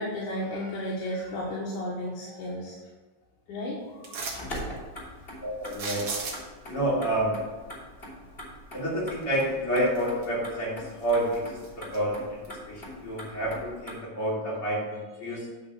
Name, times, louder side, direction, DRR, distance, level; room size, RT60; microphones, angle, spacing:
voice 1, 0.0-2.8 3.5-5.0, left 1 dB, 75° left, -5 dB, 2.7 m, -34 dB
sound 1, 4.0-4.6 5.7-6.7 9.2-9.3 9.8-10.5 10.9-12.0 12.4-12.5, right 4 dB, 50° right, 1.8 m, -36 dB
Motor vehicle (road), 4.2-14.0, equal, 20° left, 2.8 m, -43 dB
voice 2, 5.4-6.1 6.7-7.3 8.7-15.5, right 1 dB, 45° left, -7 dB, 3.8 m, -29 dB
9.4 x 4.0 x 6.7 m, 1.3 s
omnidirectional pair, 3.7 m